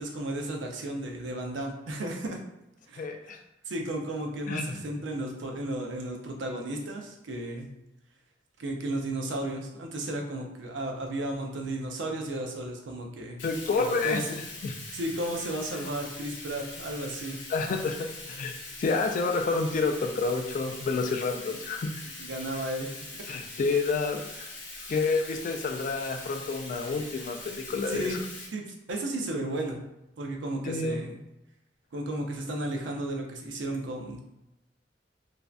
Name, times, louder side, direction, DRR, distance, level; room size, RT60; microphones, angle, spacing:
voice 1, 0.0-2.4 2.9-3.3 3.7-7.7 8.6-13.4 13.8-14.2 14.9-17.4 22.2-22.9 27.9-28.2 28.5-29.8 30.2-31.2 31.9-34.2, right 1 dB, 85° right, 2 dB, 0.5 m, -34 dB
voice 2, 3.0-3.4 4.5-4.8 13.4-14.7 17.5-18.5 18.8-22.0 23.3-24.3 24.9-28.2 30.6-31.0, left 4 dB, 45° left, 4 dB, 0.3 m, -29 dB
Bathtub (filling or washing), 13.4-28.5, left 2 dB, 85° left, 0.8 m, -42 dB
2.5 x 2.1 x 2.3 m, 0.91 s
head